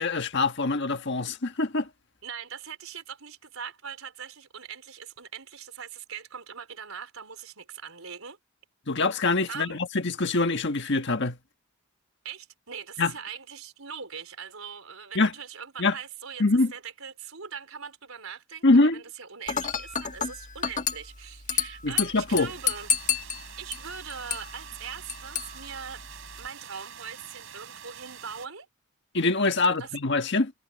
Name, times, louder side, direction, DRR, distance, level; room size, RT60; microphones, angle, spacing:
voice 1, 0.0-1.9 8.9-11.4 13.0-13.1 15.1-15.3 15.8-15.9 16.4-16.7 18.6-19.0 21.8-22.5 29.1-30.5, left 3 dB, 55° left, 1.5 m, -24 dB
voice 2, 2.2-8.4 9.5-9.8 12.2-16.4 16.7-18.6 18.9-22.9 23.2-26.0 26.4-28.7 29.5-29.9, right 7 dB, 85° right, 4.3 m, -41 dB
Dishes pots and pans / Glass, 19.5-26.5, left 7 dB, 35° left, 1.4 m, -32 dB
sound 1, 22.3-28.5, right 8 dB, 65° right, 7.9 m, -46 dB
head